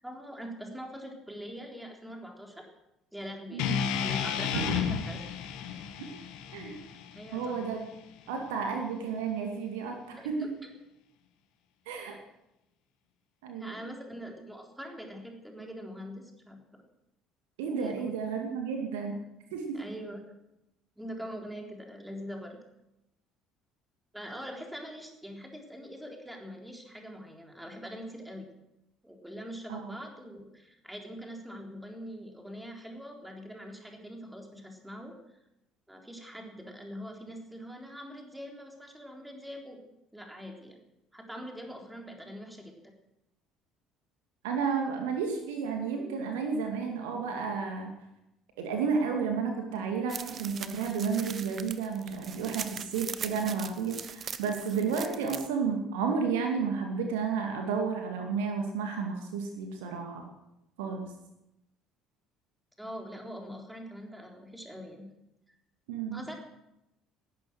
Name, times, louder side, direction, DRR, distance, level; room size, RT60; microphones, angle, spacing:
voice 1, 0.0-2.7 3.1-3.6 4.0-5.2 5.7-5.8 7.1-7.6 10.2-10.7 12.1-12.2 13.5-16.8 17.8-18.1 19.7-20.2 21.0-22.6 24.1-28.5 29.0-35.1 35.9-39.8 40.1-40.8 41.1-42.7 62.8-65.1 66.1-66.3, equal, 5° right, 2 dB, 3.8 m, -43 dB
sound 1, 3.6-7.8, left 8 dB, 60° left, 1.5 m, -33 dB
voice 2, 7.3-7.8 8.3-10.5 11.9-12.2 13.4-13.8 17.6-19.1 19.5-19.8 29.7-29.9 44.4-47.9 48.6-60.2 60.8-61.1 65.9-66.2, right 5 dB, 65° right, 3 dB, 2.4 m, -32 dB
sound 2, 50.1-55.5, right 7 dB, 35° right, 1.0 m, -41 dB
19.0 x 11.0 x 6.4 m, 0.89 s
figure-of-eight pair, 55°, 0 cm